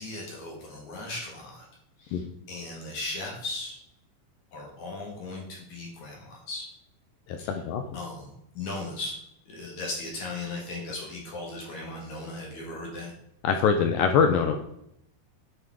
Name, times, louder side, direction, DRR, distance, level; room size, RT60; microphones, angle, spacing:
voice 1, 0.0-1.7 2.0-3.8 4.5-6.6 7.4-7.5 7.9-9.2 9.5-13.1, left 2 dB, 55° left, -1 dB, 3.0 m, -37 dB
voice 2, 7.3-7.8 13.4-14.6, left 6 dB, 80° left, 6 dB, 2.1 m, -23 dB
9.4 x 5.4 x 4.7 m, 0.76 s
omnidirectional pair, 4.5 m